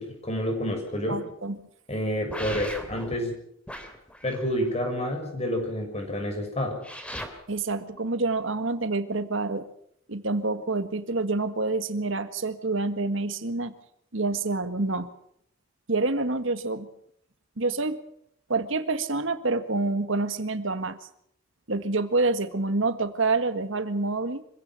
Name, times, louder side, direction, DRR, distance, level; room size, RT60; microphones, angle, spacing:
voice 1, 0.0-1.2 1.9-3.3 4.2-6.8, equal, 30° left, 3 dB, 6.5 m, -29 dB
voice 2, 1.1-1.6 7.5-9.7 10.1-13.7 14.1-15.1 15.9-16.9 17.6-18.0 18.5-21.0 21.7-24.4, right 3 dB, 70° right, 10 dB, 1.7 m, -27 dB
sound 1, 2.3-3.2 3.7-4.7 6.8-7.3, equal, 5° left, 2.9 m, -37 dB
25.5 x 16.5 x 7.6 m, 0.70 s
head